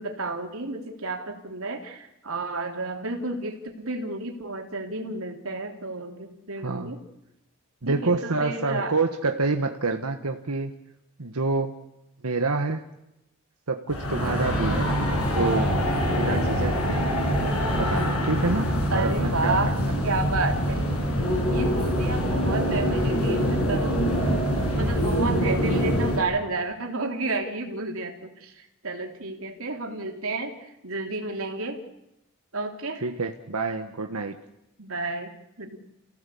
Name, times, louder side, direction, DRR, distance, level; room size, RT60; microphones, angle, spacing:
voice 1, 0.0-7.0 7.9-9.0 18.9-19.7 20.0-20.9 21.4-24.0 24.7-31.8 32.5-33.0 34.8-35.8, right 2 dB, 70° right, 3 dB, 3.4 m, -31 dB
voice 2, 7.8-10.7 11.2-11.7 12.2-12.8 13.7-14.9 15.3-15.7 16.2-17.0 17.8-19.9 33.0-34.4, right 3 dB, 90° right, 5 dB, 1.4 m, -27 dB
sound 1, 13.9-26.2, equal, 75° left, 7.2 m, -24 dB
29.0 x 17.0 x 8.5 m, 0.91 s
head